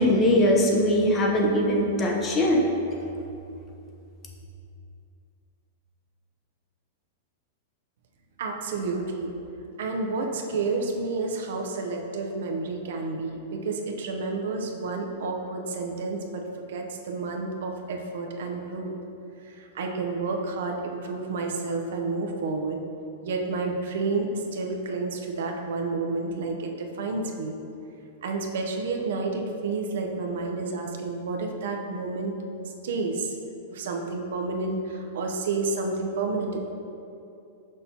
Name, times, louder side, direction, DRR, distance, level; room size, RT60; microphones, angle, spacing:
voice 1, 0.0-2.6, left 1 dB, 25° left, -1 dB, 0.8 m, -21 dB
voice 2, 8.4-9.3 9.8-18.9 19.4-22.8 23.2-27.6 28.2-32.3 32.8-33.4 33.7-36.6, right 3 dB, 75° right, 2 dB, 0.6 m, -30 dB
6.2 x 5.3 x 2.9 m, 2.7 s
hypercardioid pair, 140°, 0 cm